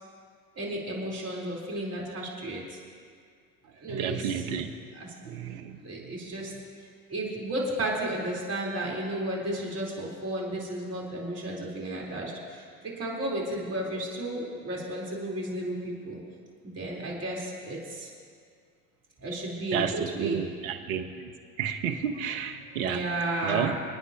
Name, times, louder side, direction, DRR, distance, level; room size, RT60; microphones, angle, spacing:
voice 1, 0.6-2.8 3.7-4.5 4.9-5.1 5.8-6.5 7.1-16.2 16.6-18.1 19.2-20.9 22.8-23.8, right 1 dB, 35° right, -3 dB, 4.1 m, -33 dB
voice 2, 3.9-4.7 5.2-5.8 19.7-19.9 20.2-21.3 21.6-23.0 23.4-23.7, right 8 dB, 70° right, 8 dB, 1.3 m, -31 dB
28.0 x 9.5 x 3.0 m, 2.2 s
hypercardioid pair, 85°, 44 cm